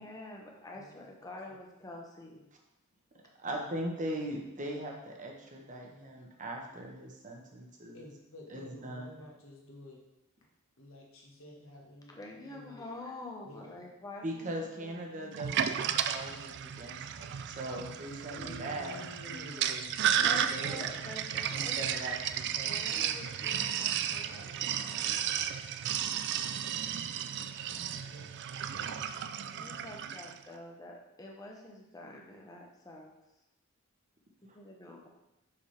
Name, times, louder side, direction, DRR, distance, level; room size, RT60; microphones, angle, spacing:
voice 1, 0.0-2.5 12.1-15.6 20.2-22.0 22.7-25.2 29.6-33.1 34.4-35.1, left 2 dB, 15° left, -1 dB, 1.0 m, -47 dB
voice 2, 0.7-1.1 1.5-1.6 7.9-10.0 10.8-12.9 13.4-13.9 18.3-20.1 27.3-27.5 28.1-30.1, left 1 dB, 65° left, -1 dB, 1.4 m, -52 dB
voice 3, 3.4-8.0 8.5-9.2 14.2-19.9 20.4-20.9 21.5-23.3 26.6-26.7 27.8-28.1 34.5-34.6, right 1 dB, 35° right, 1 dB, 1.1 m, -40 dB
Sink (filling or washing), 15.3-30.4, right 9 dB, 55° right, 0.3 m, -33 dB
6.0 x 5.9 x 3.3 m, 0.95 s
head